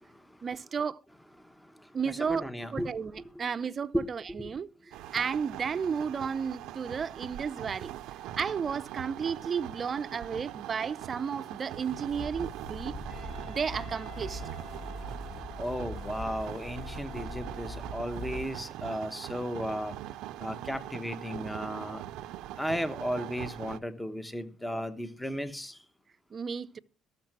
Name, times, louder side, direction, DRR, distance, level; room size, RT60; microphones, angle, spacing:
voice 1, 0.4-1.0 1.9-2.4 2.7-4.7 5.1-7.9 8.4-12.9 13.5-14.4 26.3-26.8, right 6 dB, 40° right, 0.6 m, -33 dB
voice 2, 1.6-2.9 3.3-3.4 3.9-4.1 4.4-4.5 15.6-19.9 20.4-22.0 22.6-25.8, equal, 5° left, 1.1 m, -35 dB
sound 1, 4.9-23.8, right 13 dB, 85° right, 0.6 m, -42 dB
sound 2, 12.1-18.5, equal, 30° left, 6.8 m, -42 dB
Wind instrument woodwind instrument, 13.1-18.1, left 6 dB, 85° left, 3.7 m, -52 dB
14.0 x 6.6 x 6.0 m
cardioid pair, 110°, 0 cm